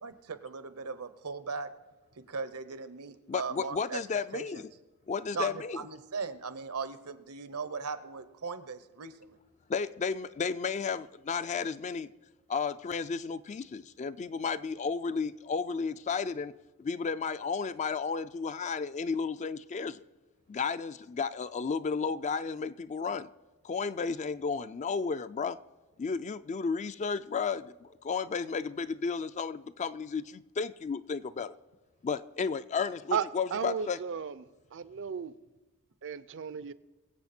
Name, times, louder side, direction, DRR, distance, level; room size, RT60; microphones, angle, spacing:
voice 1, 0.0-1.7 2.2-4.0 4.3-4.6 5.3-9.4, right 4 dB, 80° right, 0.9 m, -38 dB
voice 2, 3.3-4.7 5.1-5.8 9.7-12.1 12.5-16.5 16.8-20.0 20.5-23.3 23.6-25.6 26.0-31.5 32.0-34.0, left 5 dB, 30° left, 0.4 m, -33 dB
voice 3, 33.1-34.5 34.7-35.3 36.0-36.7, right 7 dB, 60° right, 0.5 m, -34 dB
23.0 x 8.0 x 4.4 m
head